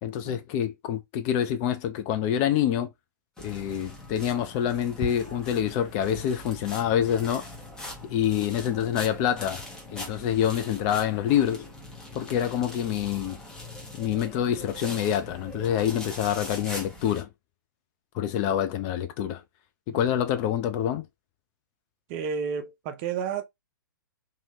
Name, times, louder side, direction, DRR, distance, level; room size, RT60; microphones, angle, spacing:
voice 1, 0.0-2.9 3.4-7.4 8.1-9.6 9.9-11.7 12.1-13.4 13.9-17.3 18.1-19.4 19.9-21.0, left 10 dB, 30° left, 0.4 m, -26 dB
sound 1, 3.4-17.2, left 1 dB, 5° left, 0.8 m, -41 dB
voice 2, 22.1-23.4, right 6 dB, 35° right, 0.5 m, -31 dB
2.8 x 2.7 x 2.7 m
figure-of-eight pair, 110°, 11 cm